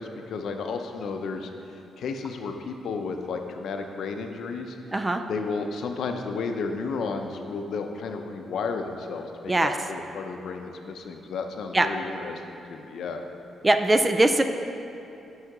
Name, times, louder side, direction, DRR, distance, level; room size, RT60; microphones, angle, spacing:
voice 1, 0.0-1.5 2.0-4.8 5.3-13.2, left 4 dB, 65° left, 5 dB, 0.6 m, -32 dB
voice 2, 4.9-5.2 9.5-9.7 11.7-11.9 13.6-14.4, right 2 dB, 15° right, 7 dB, 0.3 m, -21 dB
6.4 x 5.6 x 6.0 m, 2.8 s
cardioid pair, 145°, 0 cm